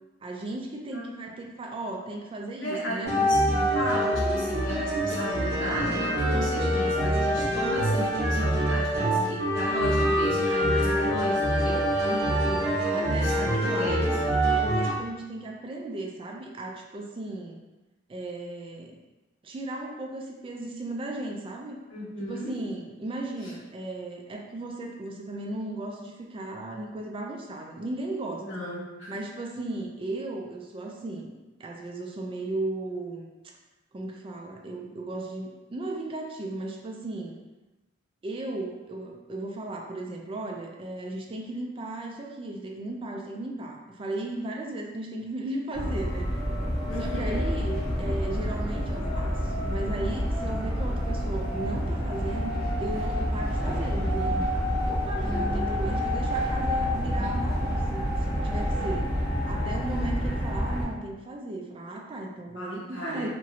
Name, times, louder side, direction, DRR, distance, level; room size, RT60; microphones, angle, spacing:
voice 1, 0.2-3.2 12.0-12.5 12.9-17.6 18.1-18.9 19.4-21.8 22.3-28.4 29.1-33.3 33.9-37.4 38.2-46.4 47.0-54.4 54.8-59.1 59.4-63.3, right 2 dB, 30° right, 0 dB, 0.3 m, -36 dB
voice 2, 0.9-1.2 2.6-11.8 12.7-14.2 21.9-22.6 23.4-23.5 28.4-29.2 46.8-47.5 55.2-56.0 57.2-57.3 62.5-63.3, equal, 75° left, -7 dB, 1.1 m, -35 dB
sound 1, 3.0-14.9, equal, 55° right, 0.8 m, -25 dB
sound 2, 45.7-60.9, equal, 45° left, 1.3 m, -28 dB
2.9 x 2.5 x 2.7 m, 1.1 s
head